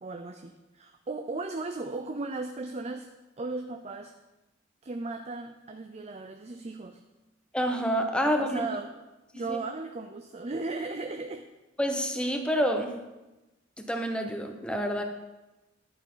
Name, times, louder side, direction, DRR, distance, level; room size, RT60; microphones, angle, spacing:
voice 1, 0.0-3.1 3.4-4.1 4.8-7.0 8.4-9.0 9.3-11.5, right 3 dB, 35° right, 6 dB, 0.5 m, -36 dB
voice 2, 7.5-8.7 9.5-9.6 11.8-12.9 13.8-15.0, equal, 5° left, 4 dB, 1.0 m, -28 dB
11.0 x 9.2 x 3.9 m, 1.0 s
head